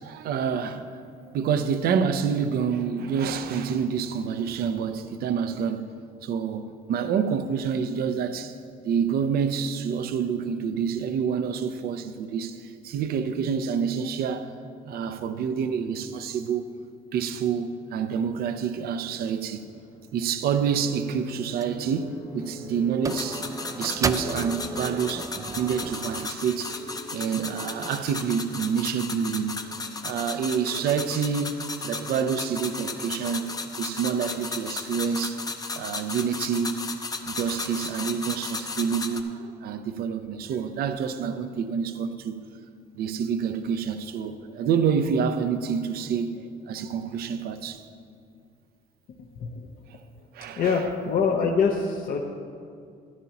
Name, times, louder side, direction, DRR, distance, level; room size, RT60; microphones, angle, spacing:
voice 1, 0.0-5.9 6.2-8.5 8.8-14.5 14.8-16.7 17.1-19.6 20.1-23.5 23.7-26.8 27.1-29.6 30.0-33.5 33.8-35.4 35.7-36.8 37.3-42.4 42.9-47.8 50.3-50.8, right 7 dB, 65° right, 0.6 m, -27 dB
sound 1, 17.8-34.0, left 2 dB, 75° left, 1.6 m, -47 dB
sound 2, 21.6-21.8 22.1-22.6 23.0-26.3, right 4 dB, 20° right, 0.3 m, -34 dB
sound 3, 23.1-39.2, left 3 dB, 20° left, 0.7 m, -35 dB
voice 2, 49.1-49.8 50.6-52.2, left 5 dB, 55° left, 0.8 m, -25 dB
14.0 x 11.0 x 2.9 m
cardioid pair, 110°, 17 cm